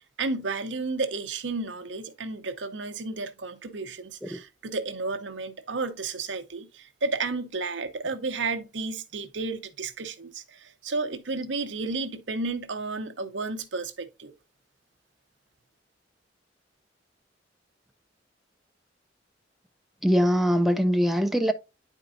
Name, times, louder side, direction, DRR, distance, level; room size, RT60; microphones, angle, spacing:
voice 1, 0.2-14.3, right 3 dB, 75° right, 0.8 m, -32 dB
voice 2, 20.0-21.5, equal, ahead, 0.4 m, -22 dB
9.8 x 4.5 x 2.5 m
head